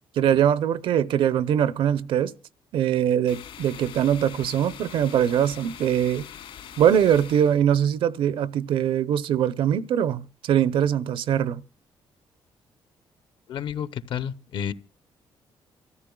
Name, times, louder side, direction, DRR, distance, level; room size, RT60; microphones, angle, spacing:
voice 1, 0.2-2.3 2.7-6.2 6.8-11.6, right 9 dB, 70° right, 0.7 m, -22 dB
sound 1, 3.3-7.6, left 9 dB, 80° left, 2.9 m, -43 dB
voice 2, 13.5-14.7, left 8 dB, 65° left, 0.8 m, -30 dB
28.0 x 14.0 x 2.3 m
cardioid pair, 155°, 9 cm